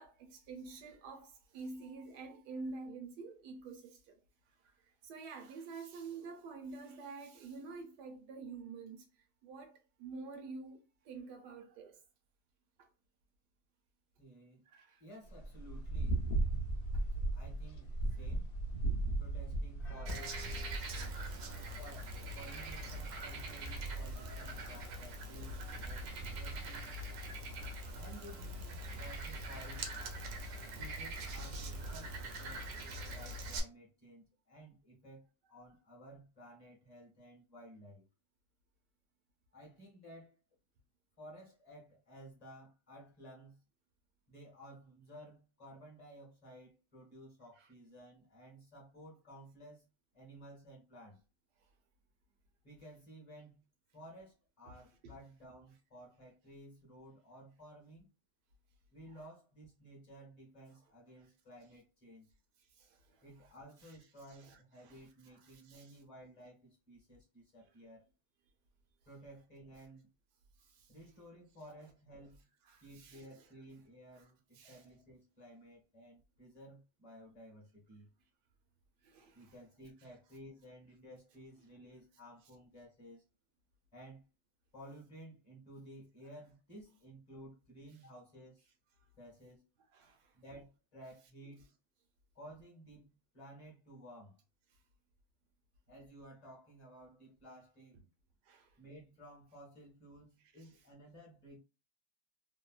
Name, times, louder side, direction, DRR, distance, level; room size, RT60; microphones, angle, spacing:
voice 1, 0.0-4.2 4.6-12.0 12.8-12.9 14.7-15.0 16.9-17.0 21.3-21.4 27.2-28.0 28.8-29.0 30.6-30.8 47.6-47.7 55.0-55.1 62.7-63.2 63.8-63.9 64.3-66.0 70.6-70.9 72.7-73.4 74.2-74.3 74.5-74.9 79.0-79.5 89.9-90.3 98.4-98.8 100.6-100.7, right 4 dB, 90° right, 1.3 m, -49 dB
voice 2, 14.2-14.6 15.0-16.3 17.3-18.6 19.2-20.4 21.8-26.9 27.9-29.9 30.7-38.0 39.5-40.4 41.2-43.6 44.3-49.9 50.1-51.2 52.6-53.7 53.9-58.1 58.9-62.3 63.2-68.0 69.1-70.1 70.9-72.5 72.8-78.1 79.3-83.3 83.9-84.3 84.7-88.7 89.2-89.6 90.3-91.7 92.3-94.4 95.9-98.0 98.8-101.6, right 1 dB, 30° left, 0.8 m, -55 dB
sound 1, 15.3-20.8, right 2 dB, 65° left, 0.5 m, -36 dB
Frog, 20.1-33.6, right 1 dB, 65° right, 0.8 m, -42 dB
3.1 x 2.1 x 2.3 m
omnidirectional pair, 1.8 m